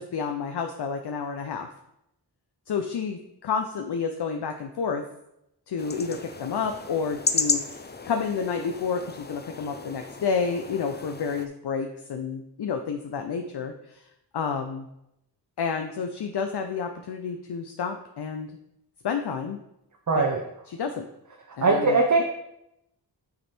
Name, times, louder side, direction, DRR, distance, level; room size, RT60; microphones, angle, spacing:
voice 1, 0.0-1.7 2.7-5.0 5.7-14.0 14.3-14.9 15.6-18.5 19.0-19.6 20.1-20.3 20.7-21.1 21.6-22.2, left 5 dB, 70° left, 5 dB, 0.6 m, -30 dB
sound 1, 5.8-11.5, left 4 dB, 25° left, 0.5 m, -33 dB
voice 2, 20.1-20.4 21.6-22.2, right 3 dB, 45° right, 1 dB, 0.8 m, -20 dB
9.3 x 3.3 x 4.4 m, 0.82 s
wide cardioid pair, 65°, 42 cm